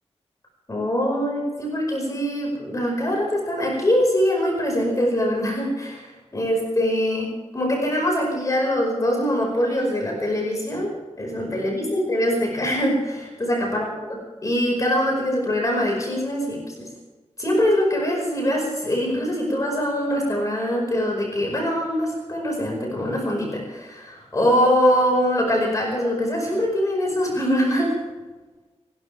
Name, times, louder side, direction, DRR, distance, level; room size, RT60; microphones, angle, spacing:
voice 1, 0.7-16.9 17.4-27.9, equal, 30° left, -1 dB, 5.3 m, -23 dB
29.5 x 12.5 x 3.5 m, 1.2 s
wide cardioid pair, 130°, 11 cm